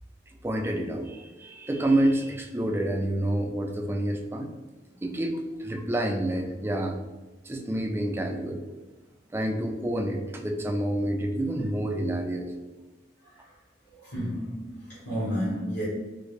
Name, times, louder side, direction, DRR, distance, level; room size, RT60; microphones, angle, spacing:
voice 1, 0.4-4.5 5.0-7.0 7.4-8.6 9.3-12.5, right 1 dB, 15° right, 3 dB, 0.3 m, -28 dB
voice 2, 13.9-15.8, equal, 55° left, -9 dB, 1.2 m, -31 dB
3.5 x 2.5 x 3.1 m, 1.2 s
head